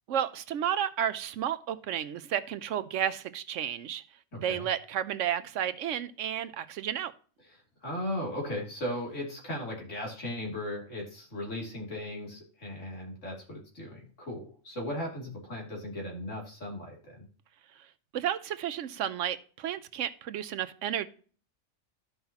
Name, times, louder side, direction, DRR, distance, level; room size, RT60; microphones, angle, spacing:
voice 1, 0.1-4.0 4.4-7.1 18.1-21.1, right 10 dB, 75° right, 14 dB, 0.9 m, -32 dB
voice 2, 4.3-4.7 7.8-17.2, left 1 dB, 65° left, -1 dB, 3.2 m, -37 dB
13.5 x 5.6 x 2.9 m, 0.41 s
omnidirectional pair, 1.4 m